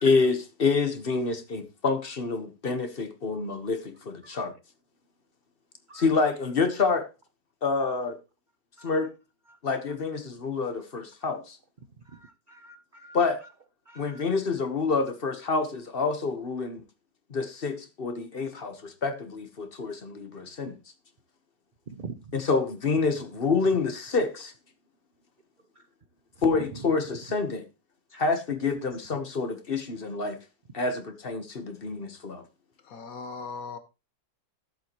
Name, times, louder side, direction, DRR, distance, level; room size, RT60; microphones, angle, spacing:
voice 1, 0.0-4.5 5.9-7.1 7.6-8.2 8.8-9.1 9.6-11.6 13.1-13.4 14.0-16.8 17.3-20.8 22.3-24.5 26.4-27.6 28.2-30.4 30.7-32.4, left 4 dB, 35° left, 1.3 m, -27 dB
voice 2, 12.1-13.2 13.9-14.3 22.0-22.1 28.1-28.2, right 4 dB, 65° right, 0.4 m, -44 dB
voice 3, 32.8-33.8, left 4 dB, 55° left, 1.7 m, -38 dB
14.0 x 7.7 x 3.1 m
omnidirectional pair, 1.9 m